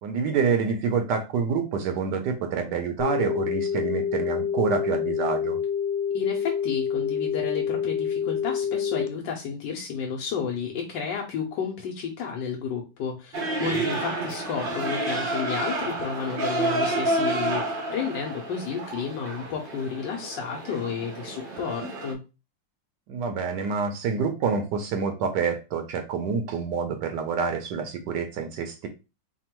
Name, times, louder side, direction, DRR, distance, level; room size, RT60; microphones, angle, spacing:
voice 1, 0.0-5.6 13.8-13.9 23.1-28.9, right 5 dB, 75° right, 6 dB, 1.2 m, -27 dB
sound 1, 3.0-9.1, left 7 dB, 70° left, 0.6 m, -27 dB
voice 2, 6.1-22.2, left 6 dB, 90° left, 0 dB, 1.4 m, -32 dB
sound 2, 13.3-22.1, right 2 dB, 50° right, 0.6 m, -29 dB
3.5 x 2.2 x 4.3 m, 0.29 s
omnidirectional pair, 1.9 m